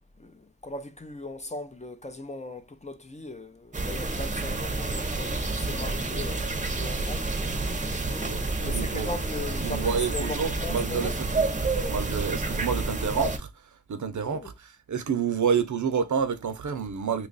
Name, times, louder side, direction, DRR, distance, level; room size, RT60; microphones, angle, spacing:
voice 1, 0.2-7.3 8.7-11.1 14.2-14.5, left 2 dB, 25° left, 0.5 m, -38 dB
sound 1, 3.7-13.4, right 3 dB, 25° right, 0.7 m, -29 dB
voice 2, 8.0-9.1 9.6-11.3 11.6-13.5 13.9-17.3, right 6 dB, 75° right, 0.7 m, -29 dB
3.0 x 2.3 x 3.9 m
wide cardioid pair, 85°, 30 cm